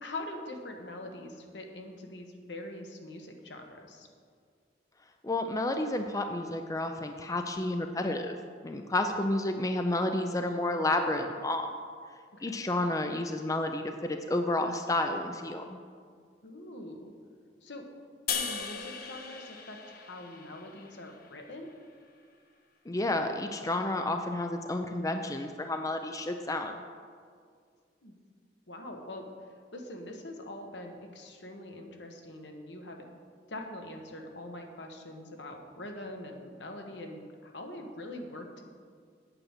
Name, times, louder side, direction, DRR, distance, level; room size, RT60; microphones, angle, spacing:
voice 1, 0.0-4.1 9.1-9.3 12.3-12.6 16.4-17.1 17.6-17.9 18.3-21.7 28.0-28.1 28.7-29.3 29.7-33.1 33.5-38.7, left 1 dB, 75° left, 3 dB, 1.5 m, -43 dB
voice 2, 5.2-8.3 8.6-11.7 12.4-15.8 22.9-26.8, left 2 dB, 20° left, 6 dB, 0.5 m, -31 dB
sound 1, 18.3-21.6, left 6 dB, 55° left, 0.9 m, -38 dB
8.8 x 8.8 x 6.6 m, 2.1 s
head